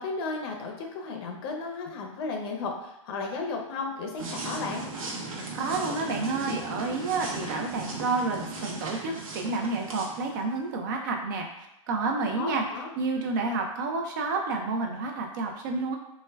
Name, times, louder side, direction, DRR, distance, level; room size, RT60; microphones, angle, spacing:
voice 1, 0.0-4.8 12.4-12.9, left 3 dB, 45° left, 2 dB, 0.6 m, -34 dB
sound 1, 4.2-10.6, right 3 dB, 80° right, 0.8 m, -37 dB
voice 2, 5.3-11.5 11.9-12.6 13.0-16.0, right 3 dB, 35° right, 2 dB, 0.4 m, -30 dB
2.2 x 2.1 x 3.3 m, 0.91 s
hypercardioid pair, 155°, 17 cm